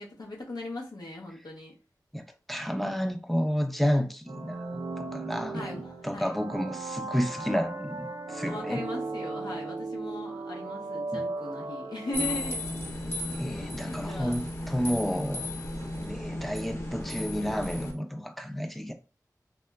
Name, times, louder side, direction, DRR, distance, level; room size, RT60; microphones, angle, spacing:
voice 1, 0.0-1.8 5.5-6.3 8.4-12.6 13.9-14.5, left 1 dB, 75° left, 0.6 m, -38 dB
voice 2, 2.1-8.8 11.1-11.2 13.3-15.5 16.0-18.9, equal, ahead, 0.4 m, -31 dB
sound 1, 4.3-12.9, right 3 dB, 85° right, 0.4 m, -37 dB
sound 2, 12.1-17.9, left 1 dB, 35° left, 0.8 m, -35 dB
2.9 x 2.2 x 2.2 m
wide cardioid pair, 65°, 7 cm